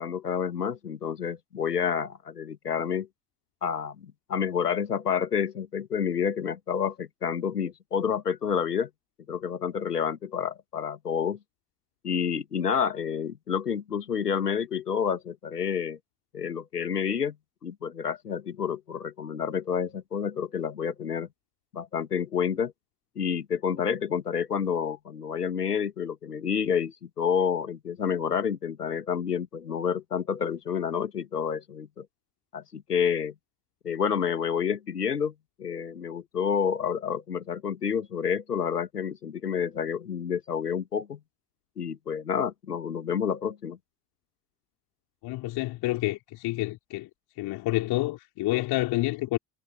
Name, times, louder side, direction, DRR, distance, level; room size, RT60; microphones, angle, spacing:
voice 1, 0.0-3.1 3.6-8.9 9.3-11.4 12.0-16.0 16.3-17.4 17.6-21.3 21.7-22.7 23.2-32.1 32.5-33.3 33.8-35.3 35.6-41.2 41.8-43.8, left 7 dB, 80° left, 2.6 m, -29 dB
voice 2, 45.2-47.1 47.4-49.4, left 18 dB, 55° left, 4.6 m, -28 dB
figure-of-eight pair, 60°, 46 cm